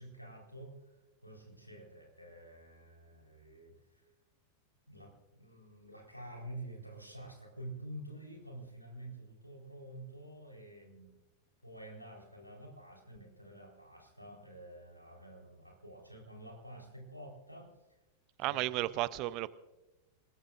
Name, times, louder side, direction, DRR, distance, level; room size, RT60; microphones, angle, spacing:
voice 1, 0.0-4.0 4.9-11.1 11.6-17.7 18.4-18.6 18.9-19.1, right 1 dB, 90° left, 4.2 m, -49 dB
voice 2, 18.4-19.5, right 17 dB, 40° right, 0.6 m, -33 dB
26.5 x 20.0 x 2.6 m
figure-of-eight pair, 90°, 0 cm